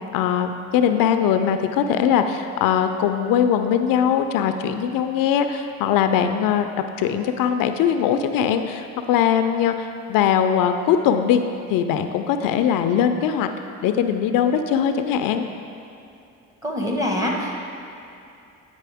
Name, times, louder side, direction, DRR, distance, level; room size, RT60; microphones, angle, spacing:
voice 1, 0.1-6.7 7.0-11.4 11.7-13.5 13.8-15.5, left 8 dB, 75° left, 8 dB, 0.5 m, -21 dB
voice 2, 16.6-17.6, left 1 dB, 10° right, -1 dB, 1.4 m, -24 dB
9.1 x 5.2 x 3.5 m, 2.6 s
supercardioid pair, 70°, 34 cm